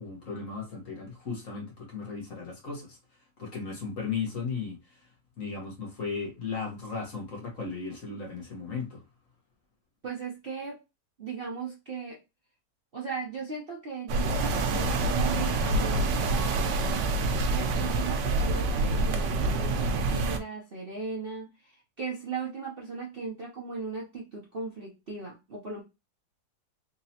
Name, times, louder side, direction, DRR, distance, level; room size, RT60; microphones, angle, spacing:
voice 1, 0.0-3.0 3.4-4.8 5.4-9.0, left 5 dB, 50° left, 1.6 m, -36 dB
voice 2, 10.0-10.8 11.2-12.2 12.9-17.0 17.4-25.8, right 5 dB, 45° right, 0.8 m, -37 dB
sound 1, 14.1-20.4, right 2 dB, 80° right, 1.3 m, -27 dB
4.0 x 2.9 x 2.8 m
omnidirectional pair, 1.9 m